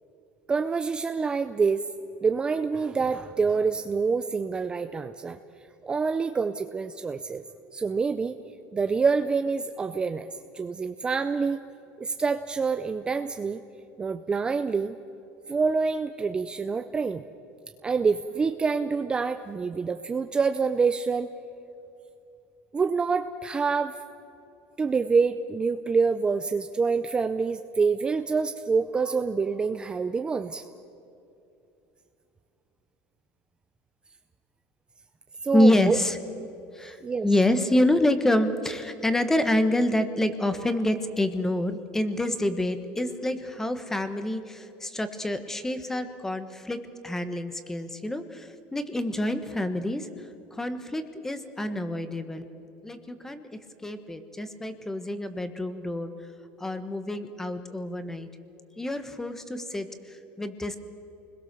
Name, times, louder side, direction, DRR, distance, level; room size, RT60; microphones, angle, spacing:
voice 1, 0.5-1.8 2.2-5.4 5.8-7.4 7.7-8.4 8.7-11.6 12.0-13.6 14.0-15.0 15.5-17.2 17.8-21.3 22.7-24.0 24.8-30.7 35.4-36.0 36.4-36.5 37.0-37.3, right 5 dB, 20° right, 9 dB, 0.6 m, -26 dB
voice 2, 35.5-36.2 36.7-46.8 47.0-52.5 52.8-53.5 53.8-56.1 56.6-58.3 58.8-60.8, left 1 dB, 10° left, 9 dB, 1.3 m, -27 dB
28.5 x 21.5 x 6.9 m, 2.8 s
cardioid pair, 140°, 5 cm